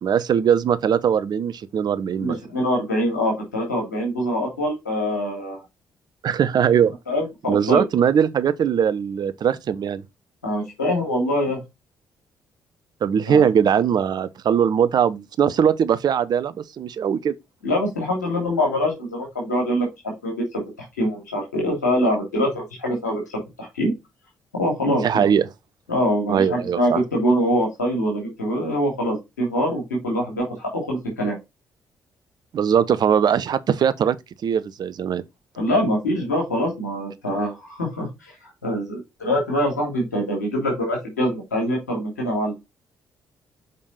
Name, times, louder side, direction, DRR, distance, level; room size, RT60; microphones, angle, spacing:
voice 1, 0.0-2.4 6.2-6.9 7.5-10.0 13.0-17.3 24.9-25.5 26.3-27.0 32.5-34.2 34.4-35.2, right 8 dB, 50° right, 0.8 m, -20 dB
voice 2, 2.2-5.6 7.1-7.8 10.4-11.6 13.3-13.5 17.6-20.6 21.0-23.2 23.6-23.9 24.5-25.3 25.9-31.3 35.6-38.1 38.4-42.5, equal, 85° left, 3.0 m, -24 dB
6.8 x 5.3 x 4.1 m
figure-of-eight pair, 40°, 9 cm